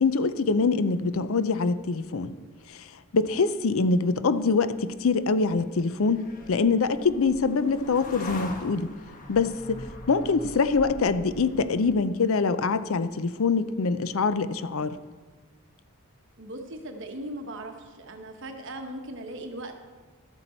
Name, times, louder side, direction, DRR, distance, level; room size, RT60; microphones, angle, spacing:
voice 1, 0.0-2.3 2.7-2.9 3.1-8.9 9.3-9.8 10.1-15.0, left 4 dB, 70° left, 12 dB, 0.5 m, -24 dB
sound 1, 4.9-12.3, left 1 dB, 40° left, 1.1 m, -42 dB
voice 2, 16.4-19.7, right 1 dB, 55° right, 5 dB, 1.1 m, -38 dB
12.5 x 8.1 x 4.4 m, 1.4 s
head